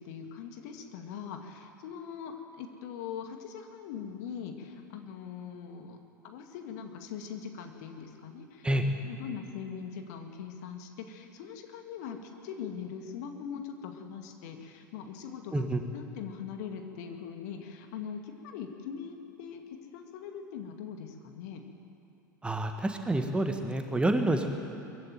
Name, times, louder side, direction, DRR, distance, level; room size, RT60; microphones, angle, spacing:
voice 1, 0.0-6.0 6.2-21.6, left 7 dB, 55° left, 5 dB, 2.2 m, -41 dB
voice 2, 22.4-24.5, right 1 dB, 10° right, 5 dB, 1.6 m, -28 dB
22.0 x 15.5 x 9.2 m, 2.7 s
figure-of-eight pair, 80°, 11 cm